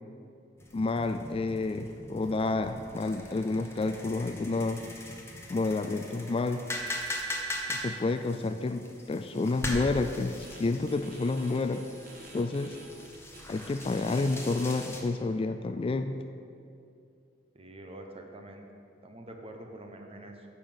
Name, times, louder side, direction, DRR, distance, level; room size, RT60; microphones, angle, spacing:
sound 1, 0.6-15.0, left 1 dB, 15° left, 1.1 m, -41 dB
voice 1, 0.7-4.8 5.5-6.6 7.7-11.8 12.3-12.8 13.5-16.1, left 3 dB, 30° left, 8 dB, 0.3 m, -30 dB
sound 2, 10.4-10.6 10.9-14.9, right 2 dB, 45° right, 1.5 m, -50 dB
voice 2, 17.5-18.6 19.0-20.5, right 1 dB, 30° right, 3 dB, 1.0 m, -46 dB
10.0 x 5.6 x 7.1 m, 2.6 s
head